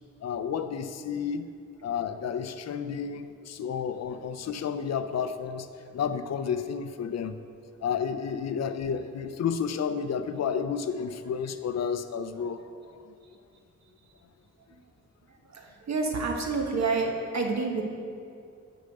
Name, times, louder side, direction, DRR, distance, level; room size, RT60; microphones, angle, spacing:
voice 1, 0.2-1.5 1.8-7.4 7.8-12.7, left 7 dB, 60° left, 10 dB, 0.5 m, -31 dB
voice 2, 15.3-17.8, right 4 dB, 65° right, 2 dB, 1.2 m, -29 dB
6.6 x 6.4 x 7.6 m, 2.4 s
wide cardioid pair, 120°, 30 cm